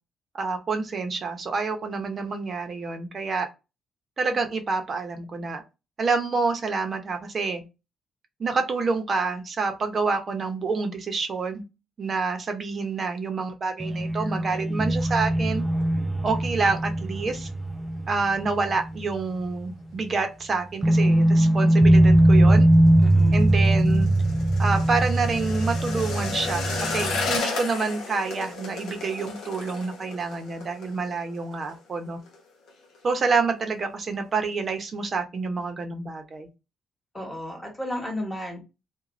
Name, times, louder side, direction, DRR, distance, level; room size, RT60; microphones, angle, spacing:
voice 1, 0.4-3.5 4.2-5.6 6.0-7.6 8.4-11.6 12.0-15.6 16.2-17.5 18.1-22.7 23.3-24.1 24.6-32.2 33.0-36.5, right 4 dB, 45° right, 6 dB, 0.7 m, -28 dB
sound 1, 13.8-19.2 19.5-19.6 20.8-27.4, right 1 dB, 10° right, 0.4 m, -21 dB
sound 2, 22.7-31.8 32.0-32.4 32.7-33.2 33.6-33.7, left 4 dB, 80° left, 0.7 m, -34 dB
voice 2, 23.0-23.5 37.1-38.6, left 1 dB, 15° left, 1 dB, 1.2 m, -33 dB
2.5 x 2.2 x 3.0 m, 0.27 s
cardioid pair, 90°, 0 cm